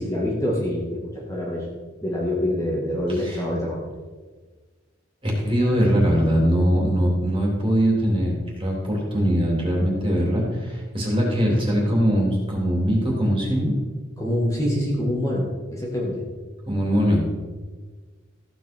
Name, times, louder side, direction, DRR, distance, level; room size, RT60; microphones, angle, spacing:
voice 1, 0.0-1.7 2.0-3.8 14.2-16.2, left 1 dB, 15° left, -5 dB, 2.0 m, -25 dB
voice 2, 3.1-3.4 5.2-13.7 16.7-17.2, equal, 25° right, -2 dB, 3.3 m, -21 dB
15.0 x 8.0 x 4.6 m, 1.4 s
head